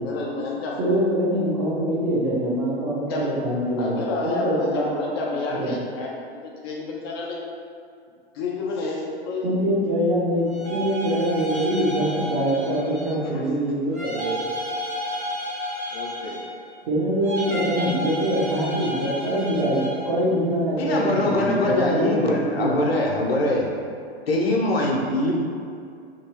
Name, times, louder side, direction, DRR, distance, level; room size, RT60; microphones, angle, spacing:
voice 1, 0.0-0.8 3.1-3.3 3.8-7.4 8.3-9.4 13.3-13.4 15.9-16.4, left 3 dB, 25° left, -2 dB, 0.3 m, -30 dB
voice 2, 0.8-3.9 4.2-5.2 5.5-5.8 9.4-14.4 16.9-22.8, right 1 dB, 35° right, -7 dB, 1.0 m, -24 dB
sound 1, 10.4-13.3 13.9-16.7 17.2-20.2, equal, 90° right, 1.5 m, -32 dB
voice 3, 20.8-23.7 24.3-25.3, left 2 dB, 70° left, -1 dB, 0.6 m, -22 dB
2.9 x 2.8 x 2.9 m, 2.3 s
figure-of-eight pair, 100°, 32 cm